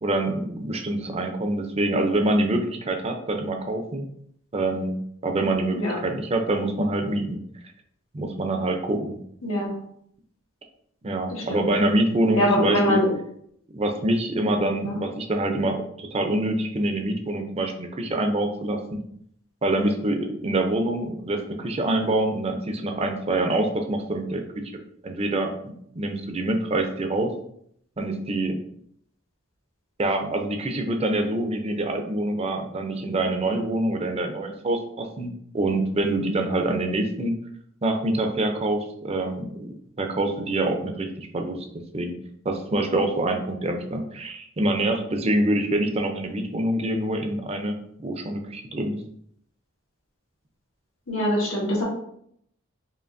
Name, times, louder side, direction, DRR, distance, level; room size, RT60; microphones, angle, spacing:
voice 1, 0.0-4.1 4.5-5.8 6.0-7.4 8.1-9.2 11.0-13.0 13.7-19.0 19.6-24.4 25.0-27.3 28.0-28.6 30.0-37.3 37.8-39.7 40.0-41.6 41.9-42.1 42.4-49.0, right 1 dB, 30° right, 4 dB, 0.5 m, -25 dB
voice 2, 9.4-9.7 11.3-11.7 12.3-13.1 14.8-15.0 51.1-51.8, equal, 85° left, -4 dB, 1.5 m, -23 dB
5.0 x 2.7 x 2.6 m, 0.69 s
head